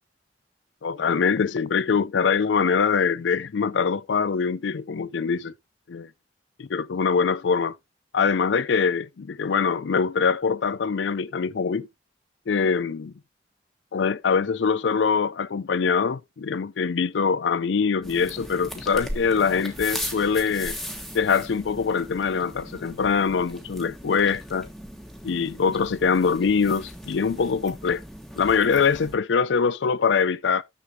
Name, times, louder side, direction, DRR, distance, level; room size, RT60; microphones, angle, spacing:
voice 1, 0.8-5.5 5.9-6.0 6.6-7.8 8.1-9.0 9.4-11.9 12.5-13.1 13.9-20.8 21.1-24.7 25.2-28.0 28.4-30.6, left 5 dB, 80° left, 0.4 m, -23 dB
sound 1, 18.0-29.2, equal, ahead, 1.3 m, -38 dB
10.0 x 6.9 x 2.7 m
head